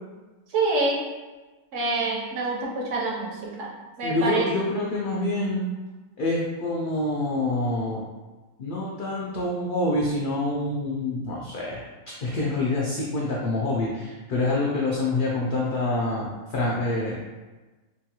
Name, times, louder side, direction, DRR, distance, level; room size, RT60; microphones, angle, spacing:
voice 1, 0.5-1.0 1.7-3.7 4.0-4.5, right 3 dB, 65° right, -3 dB, 1.0 m, -26 dB
voice 2, 4.0-5.7 6.2-8.0 8.6-11.8 12.2-17.3, left 2 dB, 80° left, -5 dB, 0.4 m, -26 dB
3.0 x 2.3 x 2.8 m, 1.2 s
omnidirectional pair, 1.4 m